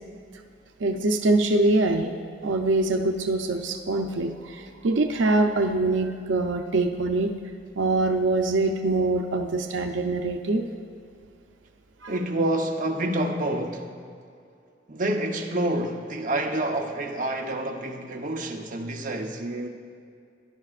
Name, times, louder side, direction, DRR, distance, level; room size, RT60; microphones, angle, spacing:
voice 1, 0.8-2.1 2.4-7.3 7.8-10.7 12.0-12.1, right 2 dB, 90° right, 0.6 m, -24 dB
voice 2, 12.1-13.9 14.9-19.7, right 1 dB, 45° right, 0.9 m, -28 dB
18.5 x 11.0 x 2.5 m
head